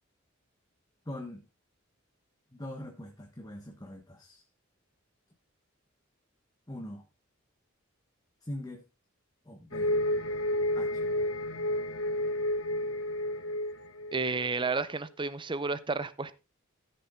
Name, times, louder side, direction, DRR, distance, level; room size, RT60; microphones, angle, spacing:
voice 1, 1.0-1.4 2.5-4.4 6.7-7.0 8.4-8.8 9.4-9.9 10.7-11.0, left 1 dB, 20° left, 1.4 m, -42 dB
sound 1, 9.7-14.7, left 1 dB, 90° left, 1.5 m, -31 dB
voice 2, 14.1-16.4, right 4 dB, 25° right, 0.7 m, -31 dB
14.5 x 6.9 x 3.7 m
head